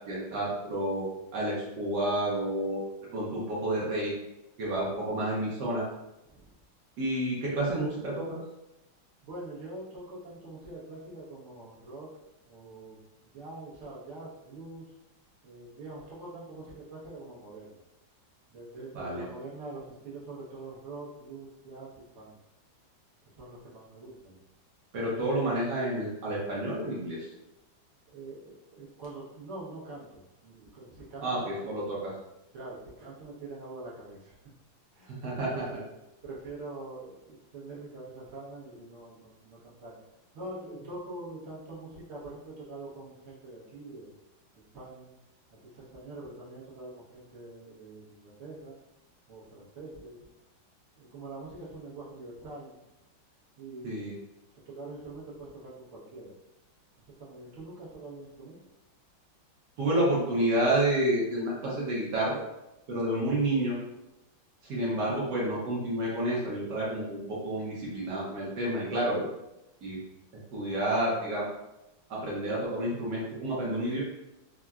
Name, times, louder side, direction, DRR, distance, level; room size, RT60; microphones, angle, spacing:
voice 1, 0.1-1.1 1.3-2.8 3.1-4.1 4.6-5.8 7.0-8.4 18.9-19.2 24.9-27.3 31.2-32.1 35.2-35.5 53.8-54.1 59.8-62.4 62.9-63.8 64.6-69.3 69.8-70.0 70.5-71.5 72.1-74.0, right 1 dB, 65° right, -5 dB, 1.2 m, -29 dB
voice 2, 9.2-12.1 12.5-14.9 15.4-17.8 18.5-22.3 23.4-24.4 25.0-25.3 28.1-31.8 32.5-34.3 34.9-35.8 36.2-39.9 40.3-44.1 44.5-45.1 45.5-48.7 49.3-50.2 51.0-52.9 53.6-53.9 54.7-56.3 57.2-58.6, right 2 dB, 50° right, -7 dB, 0.9 m, -44 dB
3.6 x 2.1 x 2.3 m, 0.92 s
omnidirectional pair, 2.1 m